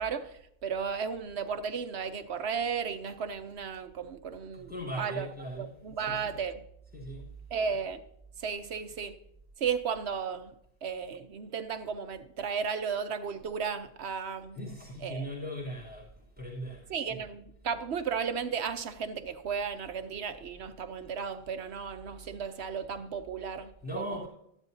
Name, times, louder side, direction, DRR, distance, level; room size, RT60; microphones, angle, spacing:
voice 1, 0.0-5.3 5.6-6.6 7.5-8.0 8.4-9.2 9.6-10.5 10.8-14.6 15.0-15.3 16.9-24.3, right 6 dB, 90° right, 1.2 m, -34 dB
voice 2, 4.5-5.7 6.0-6.4 6.9-7.3 14.5-16.9 23.8-24.3, equal, 10° right, 3.1 m, -39 dB
14.0 x 11.0 x 2.8 m
omnidirectional pair, 1.1 m